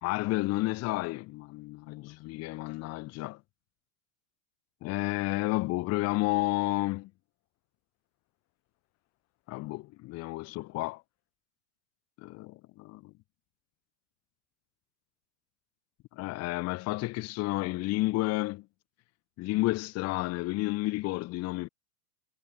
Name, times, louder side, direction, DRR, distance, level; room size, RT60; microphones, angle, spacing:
voice 1, 0.0-3.4 4.8-7.1 9.5-11.0 12.2-13.1 16.1-18.7 19.4-21.7, left 20 dB, 35° left, 1.0 m, -31 dB
supercardioid pair, 125°, 43 cm